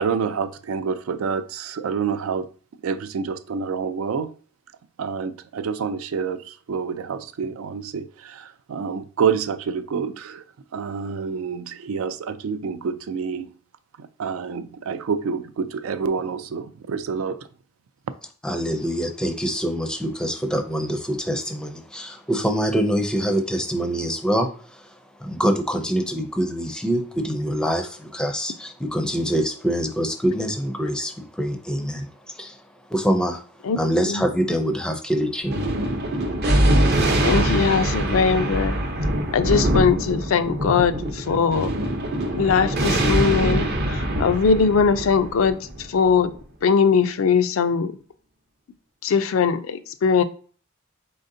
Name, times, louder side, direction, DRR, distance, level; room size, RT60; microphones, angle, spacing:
voice 1, 0.0-2.5 2.8-4.3 5.0-10.4 10.7-13.5 14.0-17.4, right 6 dB, 75° right, 0.3 m, -27 dB
voice 2, 18.4-24.5 25.2-32.1 32.4-32.6 32.9-33.4 33.8-35.6, equal, 5° left, 0.5 m, -24 dB
Thunder, 35.5-46.3, right 1 dB, 50° right, 0.7 m, -23 dB
voice 3, 37.2-38.8 39.3-41.7 42.4-46.3 46.6-48.0 49.0-50.2, left 5 dB, 70° left, 0.4 m, -20 dB
4.1 x 3.8 x 2.6 m
head